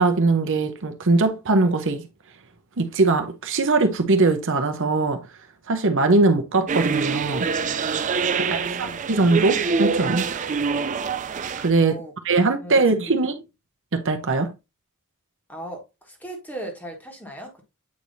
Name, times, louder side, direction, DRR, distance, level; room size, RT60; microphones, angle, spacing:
voice 1, 0.0-2.0 2.8-5.2 5.7-7.5 8.4-10.4 11.6-12.0 12.2-13.4 13.9-14.5, right 3 dB, 60° right, 0.8 m, -21 dB
sound 1, 6.7-11.7, right 5 dB, 35° right, 0.4 m, -25 dB
voice 2, 8.4-9.0 11.8-12.1 12.6-12.8 15.5-17.6, right 1 dB, 5° left, 1.5 m, -37 dB
8.4 x 4.7 x 2.6 m
head